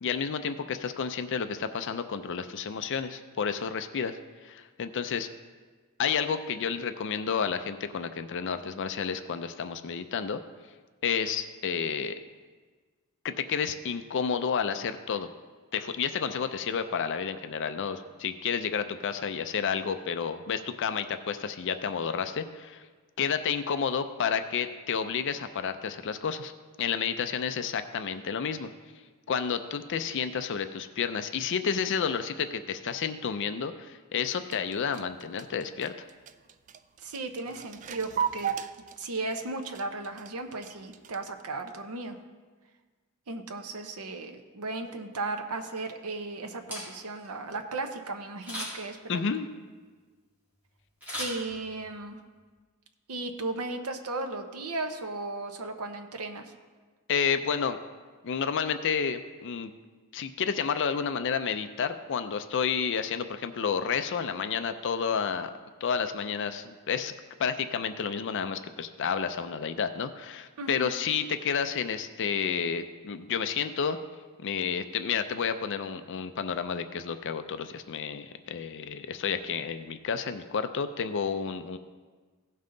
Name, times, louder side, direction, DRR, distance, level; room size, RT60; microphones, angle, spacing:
voice 1, 0.0-5.3 6.0-10.4 11.0-12.2 13.2-15.3 15.7-22.8 23.2-26.5 26.8-28.7 29.3-35.9 49.1-49.5 57.1-57.8 58.2-59.7 60.1-65.5 65.8-67.1 67.4-74.0 74.4-81.8, left 6 dB, 55° left, 10 dB, 0.4 m, -30 dB
sound 1, 34.2-41.4, right 8 dB, 35° right, 0.3 m, -36 dB
voice 2, 37.0-38.5 39.0-42.2 43.3-49.2 51.2-52.2 53.1-56.5 70.6-70.9, right 3 dB, 80° right, 5 dB, 0.8 m, -36 dB
Camera, 46.5-47.3 48.4-49.0 51.0-52.0 52.4-52.5, left 1 dB, 10° right, 3.5 m, -37 dB
16.5 x 5.5 x 3.9 m, 1.4 s
head